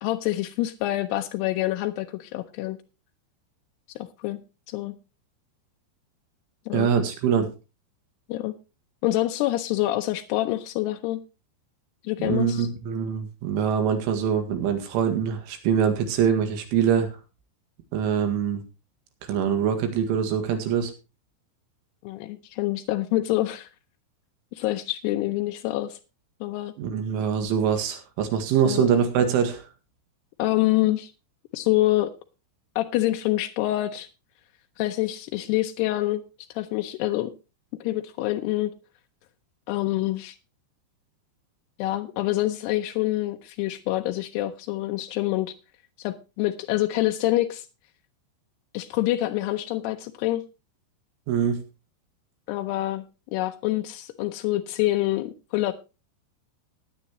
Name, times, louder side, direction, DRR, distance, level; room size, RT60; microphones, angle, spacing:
voice 1, 0.0-2.8 4.0-4.4 4.7-5.0 6.7-6.9 8.3-8.5 9.0-11.2 12.0-12.7 22.0-23.7 24.5-26.0 26.4-26.7 28.7-28.9 30.4-31.1 31.5-32.1 32.8-34.1 34.8-36.2 36.5-37.3 37.8-38.7 39.7-40.4 41.8-45.5 46.0-47.7 48.7-50.4 52.5-53.0 53.3-55.7, left 16 dB, 80° left, 5 dB, 2.5 m, -26 dB
voice 2, 6.7-7.5 12.2-17.2 17.9-18.6 19.3-20.9 26.8-29.6 51.3-51.6, right 7 dB, 90° right, 6 dB, 4.4 m, -24 dB
17.0 x 10.0 x 3.0 m, 0.30 s
omnidirectional pair, 5.4 m